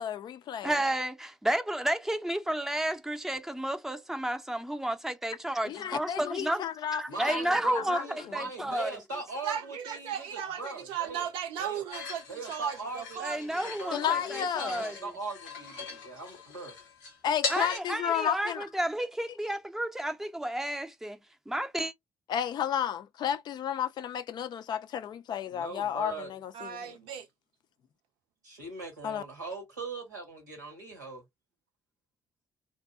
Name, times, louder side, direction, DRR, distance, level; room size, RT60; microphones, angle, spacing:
voice 1, 0.0-0.8 5.6-7.4 7.8-8.4 13.9-14.8 17.2-18.7 22.3-26.9 29.0-29.2, left 9 dB, 50° left, 0.4 m, -32 dB
voice 2, 0.6-6.6 6.9-8.0 8.3-8.9 13.2-14.9 17.5-21.2 21.5-21.9, right 1 dB, 5° right, 0.5 m, -31 dB
voice 3, 7.1-11.3 11.6-11.8 12.3-16.7 25.5-26.4 28.4-31.2, right 3 dB, 90° right, 0.8 m, -40 dB
voice 4, 9.4-12.2 12.5-13.4 26.5-27.3, right 9 dB, 70° right, 0.5 m, -36 dB
sound 1, 11.9-17.8, left 5 dB, 80° left, 0.7 m, -40 dB
2.6 x 2.0 x 2.4 m
figure-of-eight pair, 45°, 9 cm